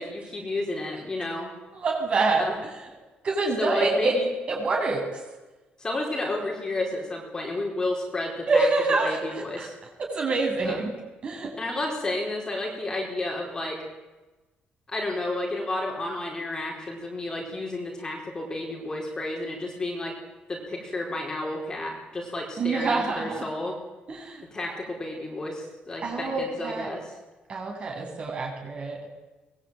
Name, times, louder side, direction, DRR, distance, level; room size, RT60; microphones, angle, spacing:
voice 1, 0.0-1.5 2.4-2.6 3.6-4.3 5.8-8.7 9.0-9.7 10.6-10.8 11.6-13.8 14.9-20.2 20.5-23.8 24.5-27.1, left 2 dB, 20° left, 0 dB, 4.7 m, -31 dB
voice 2, 1.8-2.5 3.2-4.1 4.5-5.2 8.5-9.2 9.6-9.7 10.0-10.9 11.2-11.5 22.6-23.5 24.1-24.4 26.0-26.9 27.5-29.0, right 3 dB, 35° right, 0 dB, 7.8 m, -26 dB
24.0 x 21.5 x 9.1 m, 1.1 s
cardioid pair, 175°, 3 cm